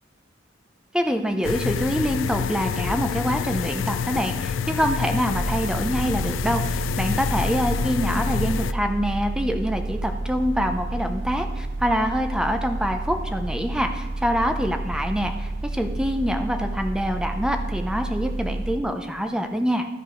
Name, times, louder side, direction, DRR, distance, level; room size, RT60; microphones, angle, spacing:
voice 1, 0.9-19.9, equal, 5° right, 6 dB, 0.6 m, -25 dB
sound 1, 1.4-8.7, left 6 dB, 70° left, 0.3 m, -27 dB
sound 2, 5.2-18.8, right 2 dB, 75° right, 1.0 m, -30 dB
13.0 x 4.5 x 4.5 m, 1.2 s
head